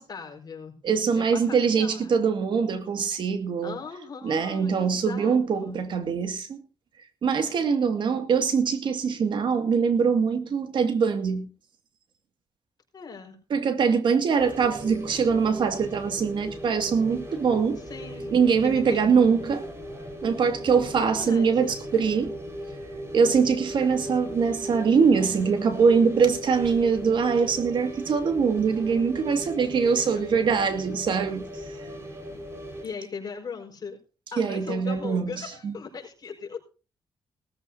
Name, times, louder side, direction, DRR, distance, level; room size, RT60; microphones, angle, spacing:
voice 1, 0.0-0.7 1.1-2.2 3.6-5.8 12.9-13.4 17.9-18.4 18.6-19.3 21.0-21.8 31.8-32.0 32.8-34.0 34.3-36.6, left 5 dB, 50° left, 5.1 m, -39 dB
voice 2, 0.8-3.8 4.2-6.6 7.2-11.5 13.5-17.8 18.3-19.7 20.2-22.4 23.1-31.8 34.4-35.3 35.6-35.7, right 6 dB, 65° right, 2.3 m, -23 dB
sound 1, 14.4-32.9, equal, 30° right, 5.3 m, -38 dB
19.0 x 14.0 x 2.8 m
cardioid pair, 95°, 9 cm